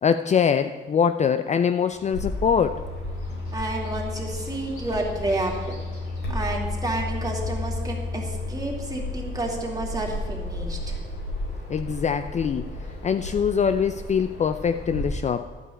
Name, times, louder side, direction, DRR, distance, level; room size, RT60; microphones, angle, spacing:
voice 1, 0.0-2.8 11.7-12.7 13.0-15.5, left 7 dB, 35° left, 10 dB, 0.4 m, -23 dB
sound 1, 1.9-14.7, left 4 dB, 10° left, 1.0 m, -36 dB
Bird vocalization bird call bird song, 2.1-15.0, left 1 dB, 90° left, 3.7 m, -35 dB
voice 2, 3.5-5.7 6.3-11.0, right 2 dB, 20° right, -1 dB, 2.6 m, -30 dB
12.0 x 5.5 x 8.5 m, 1.4 s
cardioid pair, 90°, 20 cm